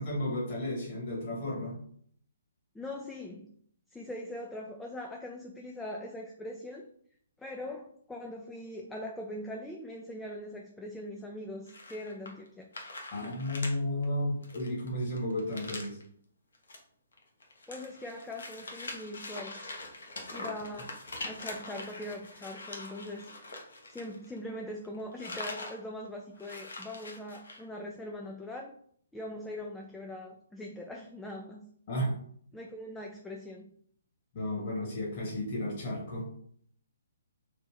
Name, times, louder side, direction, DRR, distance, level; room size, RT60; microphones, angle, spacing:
voice 1, 0.0-1.8 13.1-16.0 31.9-32.1 34.3-36.3, left 1 dB, 40° left, -5 dB, 1.3 m, -33 dB
voice 2, 2.7-3.5 3.9-6.9 7.4-12.7 13.2-13.4 17.7-19.6 20.3-21.0 21.2-23.5 23.9-28.8 29.1-31.7 32.5-33.7, left 1 dB, 5° left, 0 dB, 0.3 m, -41 dB
sound 1, 11.7-12.5 12.7-13.7 14.0-14.1 14.4-16.0 16.5-16.8 17.1-24.5 24.8-25.8 26.1-26.2 26.3-27.6, left 2 dB, 65° left, 0.8 m, -43 dB
3.2 x 2.5 x 3.2 m, 0.62 s
figure-of-eight pair, 130°, 0 cm